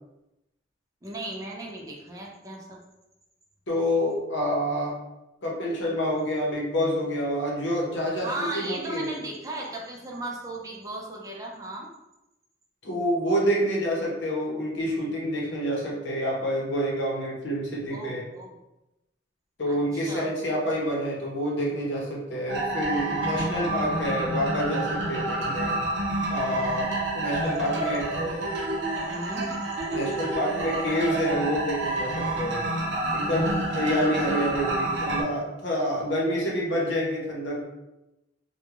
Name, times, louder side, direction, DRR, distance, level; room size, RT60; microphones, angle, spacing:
voice 1, 1.0-2.8 8.2-11.9 17.9-18.5 19.7-20.3 27.2-27.8 28.2-28.4 29.1-29.6, right 1 dB, 20° right, -2 dB, 0.4 m, -36 dB
voice 2, 3.7-5.0 5.4-9.1 12.8-18.2 19.6-25.7 26.3-28.0 29.9-32.6 33.1-37.6, equal, 70° left, -3 dB, 0.8 m, -28 dB
sound 1, 22.5-35.2, right 2 dB, 65° right, 0.5 m, -29 dB
2.3 x 2.2 x 3.0 m, 0.94 s
head